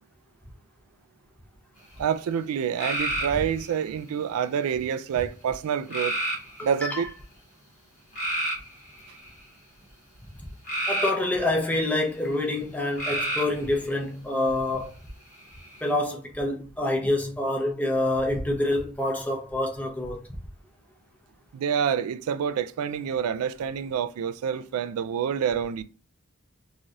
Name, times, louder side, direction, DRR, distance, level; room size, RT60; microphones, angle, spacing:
voice 1, 2.0-6.1 6.6-7.1 21.5-25.8, right 8 dB, 85° right, 0.3 m, -27 dB
sound 1, 2.8-3.8 5.9-6.7 8.1-9.4 10.7-11.8 12.9-13.6 15.3-15.9, right 1 dB, 35° left, 0.9 m, -30 dB
voice 2, 10.9-14.9 15.8-20.2, left 1 dB, 5° left, 0.5 m, -26 dB
3.2 x 2.3 x 2.6 m
head